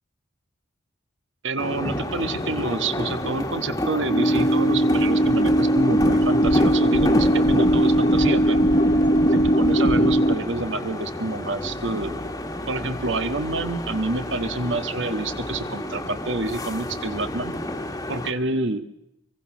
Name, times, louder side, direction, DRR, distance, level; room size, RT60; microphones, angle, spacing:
voice 1, 1.4-8.6 9.3-12.2 12.7-17.5 18.1-18.9, right 2 dB, 65° right, 9 dB, 1.5 m, -28 dB
sound 1, 1.6-18.3, left 1 dB, 15° left, 1.6 m, -30 dB
sound 2, 4.1-10.4, equal, 40° left, 1.4 m, -19 dB
24.0 x 23.5 x 6.2 m, 0.86 s
head